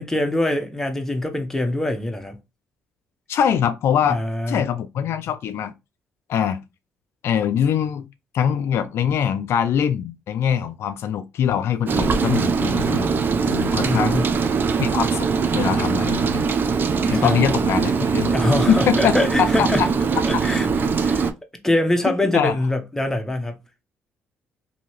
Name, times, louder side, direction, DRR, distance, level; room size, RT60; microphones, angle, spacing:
voice 1, 0.0-2.4 4.0-4.6 13.8-14.3 17.1-17.4 18.3-19.9 20.2-21.3 21.6-23.6, left 1 dB, 10° left, 0.7 m, -23 dB
voice 2, 3.3-4.2 4.5-5.7 6.3-6.6 7.2-8.1 8.3-14.2 14.8-15.3 15.5-16.5 17.1-18.3 18.7-19.1 19.6-19.9 22.1-22.5, left 8 dB, 65° left, 0.3 m, -23 dB
Rain, 11.9-21.3, right 5 dB, 45° right, 0.5 m, -21 dB
2.8 x 2.7 x 2.9 m
supercardioid pair, 70°, 5 cm